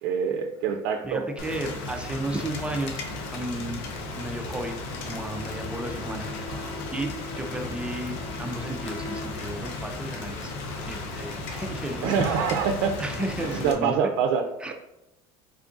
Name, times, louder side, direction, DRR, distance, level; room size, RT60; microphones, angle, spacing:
voice 1, 0.0-1.2 6.5-6.8 12.0-13.0 13.4-14.4, right 6 dB, 80° right, 3 dB, 0.4 m, -25 dB
voice 2, 1.0-3.0 3.3-3.8 4.1-6.6 6.9-10.5 10.9-12.1 13.0-13.9 14.6-14.7, right 1 dB, 10° right, 4 dB, 0.3 m, -33 dB
Rain, 1.4-13.7, left 3 dB, 80° left, 0.7 m, -35 dB
Bowed string instrument, 5.2-9.9, left 1 dB, 45° left, 0.8 m, -42 dB
3.6 x 3.5 x 2.5 m, 0.91 s
cardioid pair, 155°, 12 cm